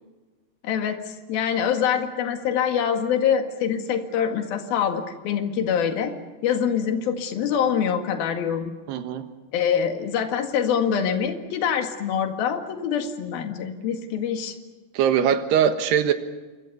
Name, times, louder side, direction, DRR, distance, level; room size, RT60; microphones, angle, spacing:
voice 1, 0.6-6.1 6.4-8.7 9.5-14.6, left 8 dB, 65° left, 5 dB, 3.7 m, -25 dB
voice 2, 8.9-9.3 14.9-16.1, right 8 dB, 80° right, 8 dB, 3.6 m, -21 dB
28.0 x 24.5 x 7.0 m, 1.2 s
omnidirectional pair, 4.7 m